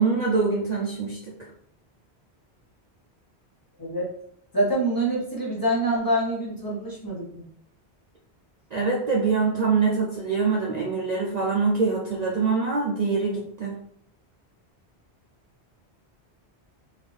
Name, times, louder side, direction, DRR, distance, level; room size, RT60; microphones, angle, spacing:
voice 1, 0.0-1.3 8.7-13.7, right 4 dB, 50° right, -3 dB, 0.6 m, -24 dB
voice 2, 4.5-7.4, right 1 dB, 20° left, -5 dB, 1.1 m, -25 dB
3.9 x 2.6 x 3.4 m, 0.70 s
omnidirectional pair, 1.1 m